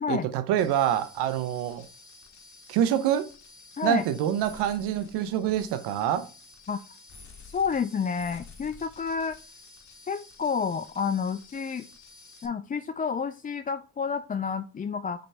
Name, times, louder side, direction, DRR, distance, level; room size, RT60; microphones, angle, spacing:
voice 1, 0.1-1.8 2.7-3.3 3.8-6.3, right 10 dB, 80° right, 0.9 m, -26 dB
sound 1, 0.6-12.5, left 3 dB, 45° left, 1.7 m, -51 dB
voice 2, 7.4-9.4 10.1-11.9 12.4-15.3, left 6 dB, 20° left, 0.4 m, -30 dB
6.7 x 4.1 x 3.4 m
supercardioid pair, 65°, 40 cm